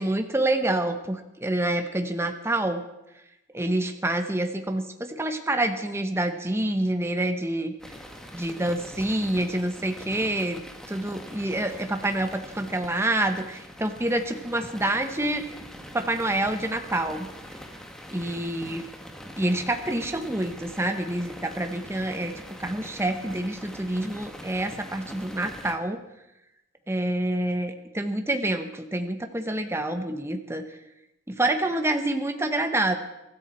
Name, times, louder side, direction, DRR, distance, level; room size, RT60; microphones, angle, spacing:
voice 1, 0.0-2.8 3.5-7.7 8.3-10.6 10.9-15.4 15.9-17.2 18.1-18.9 19.3-22.3 22.6-26.0 26.9-30.6 31.4-33.0, right 1 dB, 15° right, 7 dB, 1.0 m, -27 dB
sound 1, 7.8-25.7, equal, 5° left, 1.6 m, -43 dB
24.0 x 13.5 x 4.4 m, 0.88 s
head